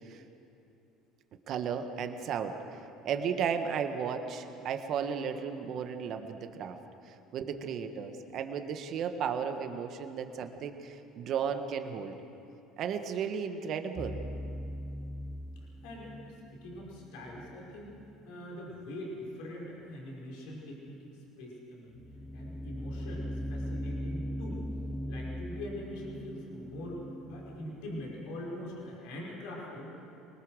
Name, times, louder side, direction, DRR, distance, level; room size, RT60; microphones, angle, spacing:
voice 1, 1.5-6.8 7.1-12.2 12.8-14.2, right 7 dB, 55° right, 7 dB, 1.5 m, -34 dB
sound 1, 14.0-18.1 22.0-28.9, equal, 5° left, 1.0 m, -40 dB
voice 2, 15.8-16.1 16.5-17.9 18.3-21.1 21.4-22.0 22.3-24.6 25.1-27.0 27.3-30.0, left 1 dB, 75° left, -3 dB, 5.6 m, -43 dB
23.5 x 19.5 x 6.5 m, 2.8 s
supercardioid pair, 85°, 0 cm